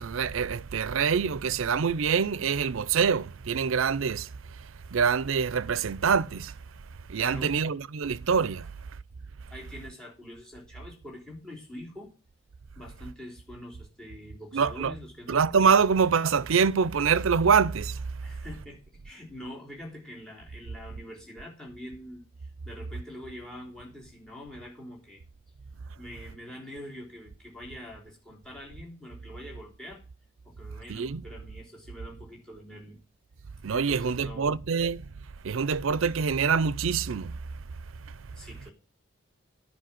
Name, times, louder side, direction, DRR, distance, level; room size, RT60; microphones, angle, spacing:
voice 1, 0.0-4.3 4.6-6.5 7.1-8.7 14.5-14.9 15.3-18.0 30.9-31.2 33.6-35.0 35.4-37.4, right 6 dB, 80° right, 0.5 m, -25 dB
voice 2, 7.2-7.5 9.5-12.1 12.8-15.4 18.2-18.8 19.0-25.2 26.0-30.0 30.4-33.0 33.7-34.5 38.3-38.7, left 1 dB, 5° left, 3.8 m, -44 dB
10.0 x 5.6 x 7.6 m
head